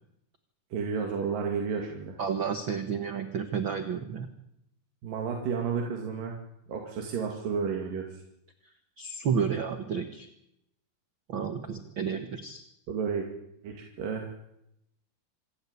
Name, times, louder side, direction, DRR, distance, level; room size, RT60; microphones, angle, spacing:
voice 1, 0.7-2.2 5.0-6.4 6.7-8.1 12.9-13.3 13.6-14.3, right 6 dB, 85° right, 1 dB, 4.0 m, -31 dB
voice 2, 2.2-4.3 9.0-10.3 11.3-12.6, right 6 dB, 50° right, 8 dB, 1.7 m, -31 dB
26.5 x 13.0 x 9.8 m, 0.80 s
omnidirectional pair, 3.8 m